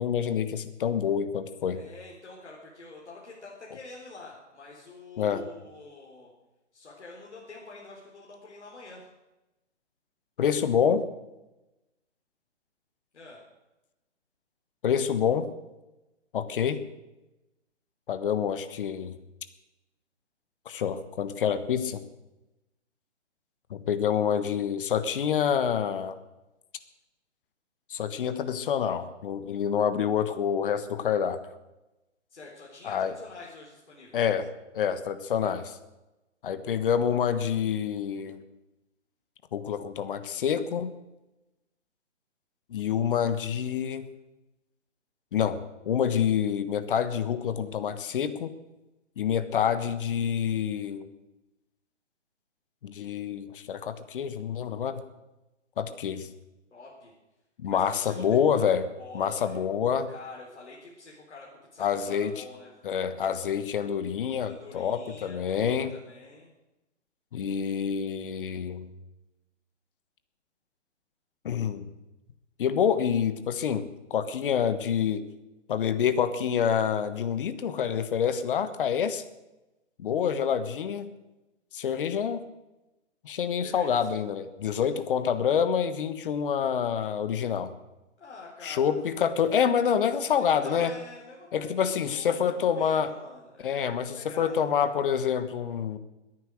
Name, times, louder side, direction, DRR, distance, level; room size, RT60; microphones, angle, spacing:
voice 1, 0.0-1.8 5.2-5.4 10.4-11.0 14.8-15.5 16.3-16.9 18.1-19.2 20.6-22.0 23.7-26.2 27.9-31.4 32.8-33.1 34.1-34.5 34.7-35.8 36.4-38.4 39.5-40.9 42.7-44.1 45.3-48.6 49.2-51.1 52.8-55.0 55.8-56.3 57.6-58.9 59.1-60.1 61.8-62.4 62.8-65.9 67.3-68.9 71.4-71.9 72.6-75.3 75.7-79.2 80.0-81.1 81.7-82.4 83.2-87.7 88.6-90.9 91.5-93.1 93.6-96.0, left 8 dB, 45° left, 11 dB, 1.4 m, -27 dB
voice 2, 1.7-6.3 6.7-9.0 13.1-13.4 32.3-34.2 56.7-57.1 57.7-58.2 59.0-59.6 60.1-61.5 61.7-62.7 64.4-66.5 83.6-84.1 84.7-84.9 88.2-89.0 90.1-95.0, left 3 dB, 70° left, -3 dB, 4.0 m, -47 dB
21.0 x 9.4 x 6.4 m, 1.0 s
figure-of-eight pair, 135°, 36 cm